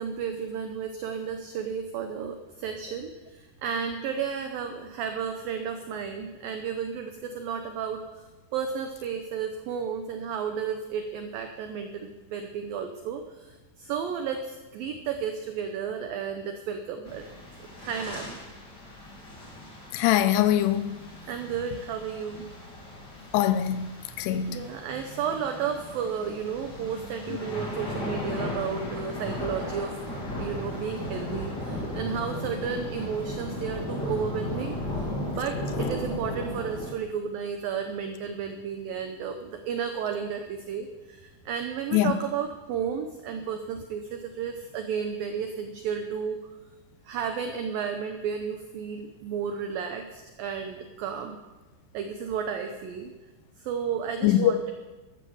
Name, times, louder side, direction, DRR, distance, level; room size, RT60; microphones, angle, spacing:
voice 1, 0.0-8.2 8.5-17.3 17.8-18.4 21.2-22.5 24.5-30.0 30.4-34.8 35.3-46.4 47.1-51.4 51.9-53.1 53.6-54.7, right 7 dB, 75° right, 2.1 m, -33 dB
sound 1, 17.0-36.9, left 1 dB, 25° left, 3.0 m, -36 dB
voice 2, 19.9-21.0 23.3-23.9 24.2-24.6 41.9-42.1 54.2-54.5, left 11 dB, 80° left, 2.5 m, -22 dB
13.0 x 12.5 x 7.1 m
omnidirectional pair, 5.3 m